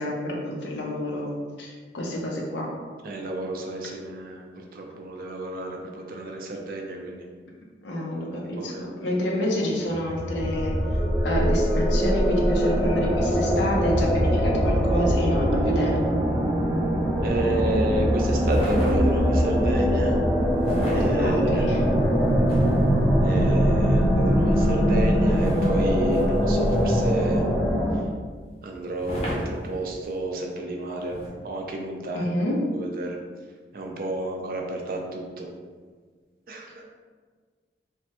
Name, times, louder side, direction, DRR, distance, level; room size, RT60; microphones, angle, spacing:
voice 1, 0.0-2.7 7.8-10.7 11.2-15.9 21.2-21.8 32.1-32.7, left 1 dB, 90° left, -2 dB, 0.6 m, -28 dB
voice 2, 3.0-7.2 8.6-8.9 17.2-20.2 20.9-21.7 23.2-27.4 28.6-31.2 31.4-32.3 32.7-33.2 33.7-35.5 36.5-36.8, right 2 dB, 55° right, 1 dB, 0.4 m, -30 dB
sound 1, 9.9-27.9, equal, 10° right, 0.8 m, -22 dB
sound 2, 18.4-19.4 20.6-23.0 25.3-27.2 29.0-30.2 31.1-31.3, equal, 35° left, 0.6 m, -35 dB
3.3 x 2.1 x 2.8 m, 1.5 s
head